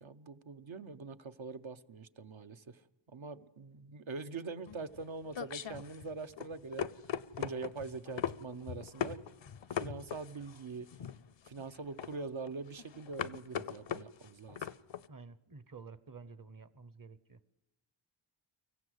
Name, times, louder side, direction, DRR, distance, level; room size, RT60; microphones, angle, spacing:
voice 1, 0.0-2.8 3.1-6.9 7.4-9.2 9.8-10.9 11.5-14.7, right 4 dB, 70° right, 10 dB, 0.9 m, -43 dB
sound 1, 4.7-15.1, left 9 dB, 70° left, 0.6 m, -40 dB
voice 2, 15.1-17.4, right 4 dB, 45° right, 16 dB, 0.9 m, -51 dB
24.5 x 15.0 x 8.0 m, 1.0 s
wide cardioid pair, 50°, 48 cm